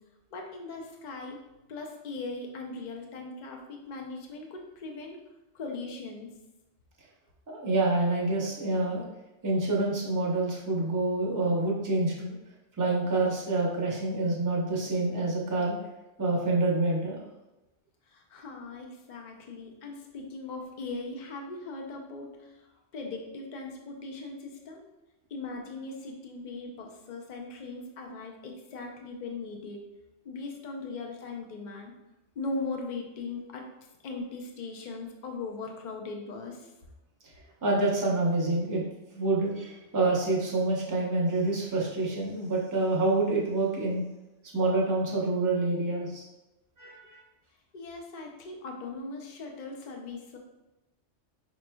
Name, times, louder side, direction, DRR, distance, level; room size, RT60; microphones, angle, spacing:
voice 1, 0.3-1.4 1.7-5.2 5.5-6.3 18.1-22.6 22.9-24.8 25.3-29.8 30.2-31.9 32.4-33.7 34.0-36.7 47.7-50.4, left 3 dB, 50° left, 1 dB, 0.6 m, -39 dB
voice 2, 7.5-9.0 9.4-12.4 12.8-15.8 16.2-17.2 37.6-38.8 39.1-44.0 44.5-46.2 46.8-47.2, right 2 dB, 20° right, -3 dB, 0.6 m, -27 dB
5.0 x 3.1 x 2.2 m, 0.99 s
omnidirectional pair, 1.2 m